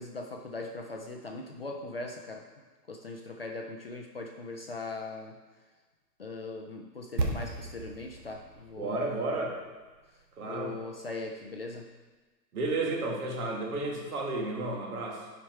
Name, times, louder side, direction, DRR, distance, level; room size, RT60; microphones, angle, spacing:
voice 1, 0.0-2.4 2.9-5.4 6.2-9.2 10.4-11.9, left 2 dB, 40° left, 2 dB, 0.4 m, -40 dB
sound 1, 7.2-11.1 11.4-11.5, right 2 dB, 75° right, 1.4 m, -37 dB
voice 2, 8.8-9.5 10.4-10.7 12.5-15.2, right 2 dB, 60° right, -1 dB, 2.0 m, -32 dB
7.2 x 5.0 x 4.5 m, 1.3 s
hypercardioid pair, 165°, 50 cm